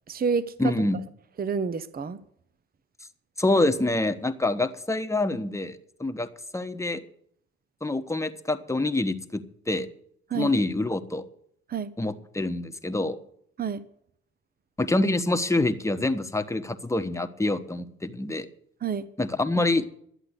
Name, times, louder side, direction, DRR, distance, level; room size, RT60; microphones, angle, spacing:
voice 1, 0.1-0.7 1.4-2.2 10.3-10.5 11.7-11.9 13.6-13.8 18.8-19.1, right 6 dB, 30° right, 15 dB, 0.7 m, -28 dB
voice 2, 0.6-1.0 3.4-7.0 7.8-9.9 10.3-11.2 12.0-13.2 14.8-18.5 19.2-19.9, left 2 dB, 10° left, 8 dB, 1.1 m, -26 dB
12.0 x 8.2 x 9.7 m, 0.68 s
cardioid pair, 90°, 30 cm